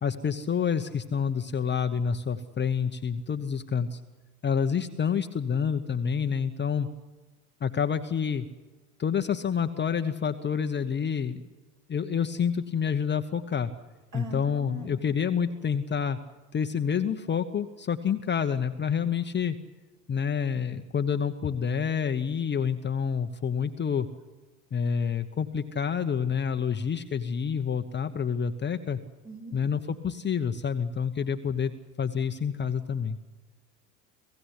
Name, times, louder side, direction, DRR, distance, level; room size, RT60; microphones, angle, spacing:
voice 1, 0.0-4.0 4.4-6.9 7.6-8.5 9.0-11.4 11.9-13.7 14.1-16.2 16.5-19.6 20.1-24.1 24.7-29.0 29.5-31.7 32.0-33.2, left 7 dB, 25° left, 7 dB, 1.0 m, -28 dB
voice 2, 14.1-15.0 29.2-29.6, right 1 dB, 40° right, 3 dB, 6.2 m, -41 dB
27.0 x 16.0 x 8.3 m, 1.3 s
hypercardioid pair, 75°, 43 cm